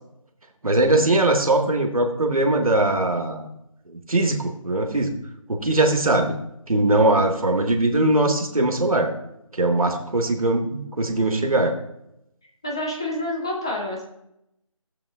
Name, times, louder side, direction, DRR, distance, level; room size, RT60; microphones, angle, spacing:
voice 1, 0.6-3.5 3.9-5.1 5.5-6.4 6.7-9.1 9.5-11.7, right 2 dB, 90° right, 4 dB, 1.6 m, -21 dB
voice 2, 12.6-14.0, left 1 dB, 10° left, -2 dB, 0.5 m, -28 dB
17.0 x 7.4 x 2.4 m, 0.81 s
figure-of-eight pair, 165°, 18 cm